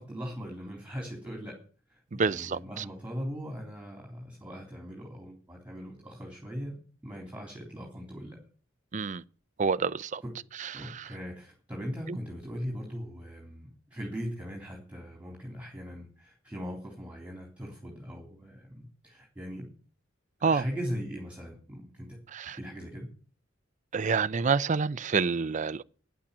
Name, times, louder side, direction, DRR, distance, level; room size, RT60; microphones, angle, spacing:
voice 1, 0.0-1.6 1.9-6.8 7.0-8.4 10.2-10.3 10.7-19.7 20.4-22.2 22.6-23.1, equal, 5° right, 3.5 m, -39 dB
voice 2, 2.1-2.8 8.9-9.2 9.6-10.2 10.6-10.7 20.4-20.6 22.3-22.6 23.9-25.8, right 5 dB, 40° right, 0.5 m, -27 dB
10.5 x 8.7 x 8.6 m
head